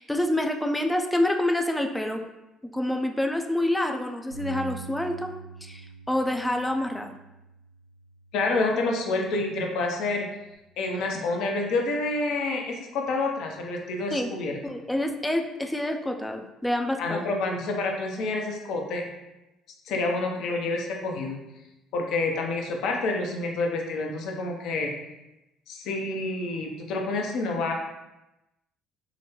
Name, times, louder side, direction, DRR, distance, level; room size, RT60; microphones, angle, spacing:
voice 1, 0.0-2.2 2.7-5.3 5.6-7.2 14.1-14.3 14.6-17.3, left 1 dB, 5° left, 4 dB, 0.4 m, -27 dB
Bass guitar, 4.3-10.6, right 1 dB, 85° right, 0.7 m, -45 dB
voice 2, 8.3-10.3 10.8-14.6 17.0-19.0 19.9-21.4 21.9-24.9 25.7-27.7, left 3 dB, 60° left, 1 dB, 0.5 m, -28 dB
3.7 x 2.1 x 2.9 m, 0.94 s
figure-of-eight pair, 55°, 0 cm